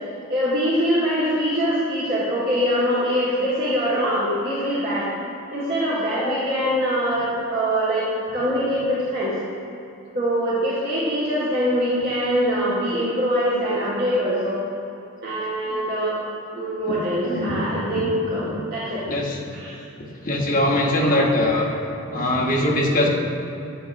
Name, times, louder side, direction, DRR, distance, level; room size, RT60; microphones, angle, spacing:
voice 1, 0.3-5.1 5.5-8.0 8.3-9.3 10.1-14.6 15.2-16.2 16.5-19.0 19.5-19.7 21.0-21.5, equal, 50° right, -11 dB, 1.4 m, -23 dB
voice 2, 20.2-21.7 22.1-23.1, left 1 dB, 40° left, -2 dB, 0.9 m, -21 dB
8.3 x 7.7 x 2.5 m, 2.9 s
head